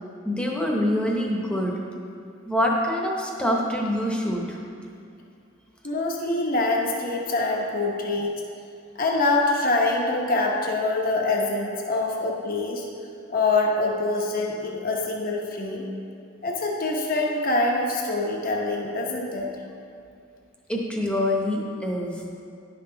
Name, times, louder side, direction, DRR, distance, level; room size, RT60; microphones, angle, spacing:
voice 1, 0.2-1.7 2.4-4.6 20.7-22.2, left 1 dB, 5° left, -2 dB, 0.9 m, -25 dB
voice 2, 5.8-8.4 9.0-12.8 13.3-15.9 16.4-19.5, left 2 dB, 45° left, 0 dB, 0.9 m, -25 dB
10.5 x 5.9 x 3.8 m, 2.4 s
head